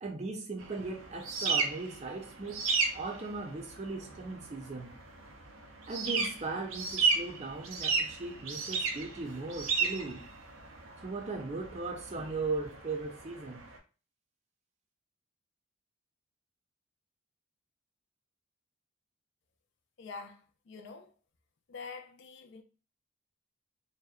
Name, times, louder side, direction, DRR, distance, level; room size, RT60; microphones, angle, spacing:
voice 1, 0.0-2.7 2.9-4.9 5.9-10.3 11.0-13.7, right 3 dB, 35° right, 0.5 m, -38 dB
sound 1, 0.6-13.8, right 4 dB, 85° right, 0.5 m, -34 dB
voice 2, 20.0-21.1 21.7-22.6, left 4 dB, 60° left, 0.4 m, -46 dB
2.7 x 2.1 x 2.3 m
head